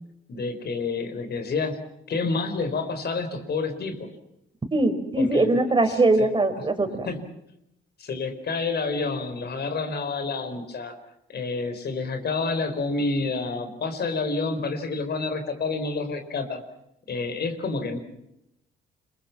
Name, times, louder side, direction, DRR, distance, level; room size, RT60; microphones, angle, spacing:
voice 1, 0.3-1.8 2.1-4.1 5.2-5.5 5.9-6.3 7.0-7.3 8.0-10.9 11.3-16.6 17.1-18.0, left 3 dB, 55° left, 8 dB, 4.6 m, -29 dB
voice 2, 4.7-7.1, right 2 dB, 25° right, 7 dB, 4.4 m, -21 dB
30.0 x 22.5 x 5.9 m, 0.83 s
cardioid pair, 90°, 20 cm